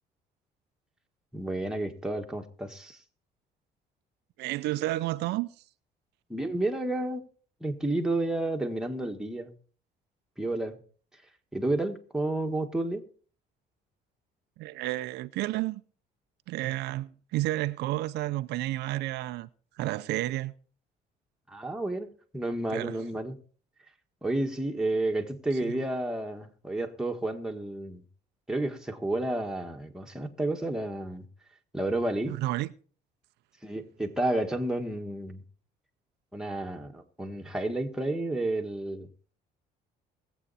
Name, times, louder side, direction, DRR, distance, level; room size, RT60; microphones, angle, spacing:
voice 1, 1.3-3.0 6.3-7.2 7.6-9.5 10.4-10.8 11.5-13.0 21.5-23.4 24.2-28.0 28.5-31.3 31.7-32.4 33.6-35.4 36.3-39.1, right 2 dB, 5° right, 1.6 m, -31 dB
voice 2, 4.4-5.5 14.6-15.8 16.5-19.5 19.8-20.5 22.7-22.9 25.6-25.7 32.3-32.7, right 16 dB, 85° right, 0.6 m, -31 dB
20.0 x 8.0 x 4.2 m
cardioid pair, 110°, 17 cm